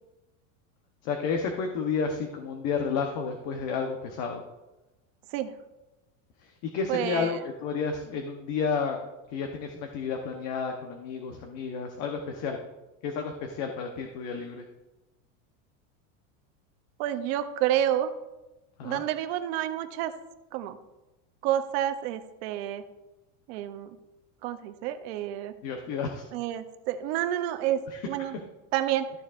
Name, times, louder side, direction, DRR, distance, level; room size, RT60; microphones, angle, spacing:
voice 1, 1.0-4.4 6.4-9.0 9.3-12.6 13.0-14.6 18.8-19.0 25.6-26.2 27.9-28.0, left 5 dB, 45° left, 3 dB, 1.0 m, -31 dB
voice 2, 6.9-7.4 17.0-18.1 18.8-20.1 20.5-20.8 21.4-22.8 23.5-24.0 24.4-25.5 26.3-27.8 28.1-28.3 28.7-29.1, right 11 dB, 50° right, 10 dB, 0.7 m, -29 dB
13.5 x 7.0 x 2.5 m, 1.0 s
supercardioid pair, 165°, 39 cm